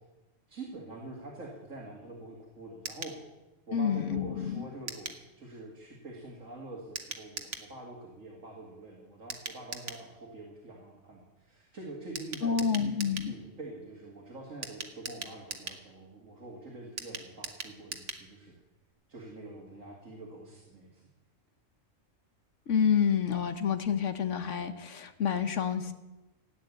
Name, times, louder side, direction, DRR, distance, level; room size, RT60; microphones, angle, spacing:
voice 1, 0.5-3.2 3.7-18.5 19.1-21.0, right 2 dB, 90° right, -2 dB, 2.9 m, -45 dB
sound 1, 2.8-3.2 4.9-5.2 7.0-7.7 9.3-10.0 12.2-13.3 14.6-15.8 17.0-18.3 18.6-18.7 18.9-19.0, right 5 dB, 65° right, 1.6 m, -40 dB
voice 2, 3.7-4.7 12.4-13.3 22.7-25.9, left 7 dB, 70° left, 9 dB, 1.3 m, -28 dB
16.0 x 9.2 x 8.4 m, 1.0 s
omnidirectional pair, 1.3 m